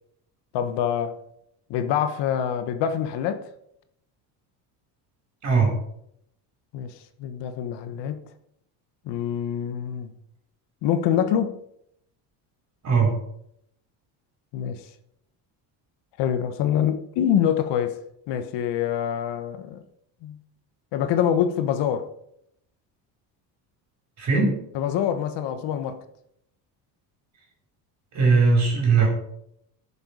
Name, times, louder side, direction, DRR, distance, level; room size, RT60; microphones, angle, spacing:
voice 1, 0.5-1.2 1.7-3.4 6.7-6.9 7.2-8.2 9.1-10.1 10.8-11.6 14.5-14.8 16.2-18.0 18.3-19.8 20.2-20.4 20.9-22.1 24.7-26.0, left 9 dB, 70° left, 1.2 m, -25 dB
voice 2, 5.4-5.7 12.8-13.1 24.2-24.6 28.1-29.1, right 4 dB, 40° right, 4.6 m, -19 dB
12.0 x 6.9 x 5.3 m
cardioid pair, 150°, 44 cm